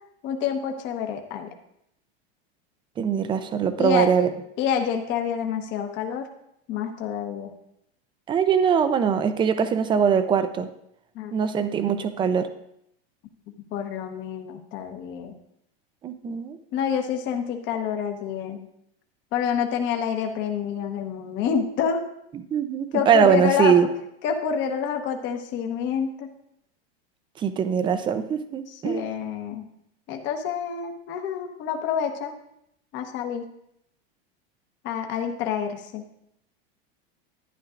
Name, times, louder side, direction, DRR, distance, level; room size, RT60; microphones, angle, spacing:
voice 1, 0.2-1.5 3.8-4.1 4.6-6.3 6.7-7.5 11.1-11.3 13.7-15.4 16.7-18.7 19.3-22.0 22.9-23.7 24.2-26.3 28.8-29.6 30.1-32.3 32.9-33.5 34.8-36.0, left 7 dB, 40° left, 4 dB, 1.1 m, -27 dB
voice 2, 3.0-4.3 8.3-10.7 11.3-12.5 16.0-16.6 22.5-23.9 27.4-29.1, right 7 dB, 15° right, 10 dB, 0.4 m, -22 dB
11.5 x 9.6 x 2.5 m, 0.76 s
supercardioid pair, 145°, 30 cm